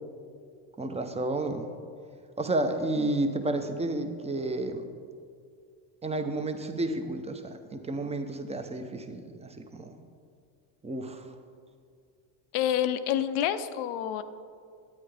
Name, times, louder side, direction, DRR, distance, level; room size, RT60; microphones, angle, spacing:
voice 1, 0.8-1.6 2.4-4.8 6.0-10.0 10.8-11.2, right 2 dB, 15° right, 7 dB, 0.7 m, -31 dB
voice 2, 12.5-14.2, left 10 dB, 75° left, 12 dB, 0.7 m, -28 dB
9.9 x 8.5 x 3.4 m, 2.2 s
supercardioid pair, 95°, 49 cm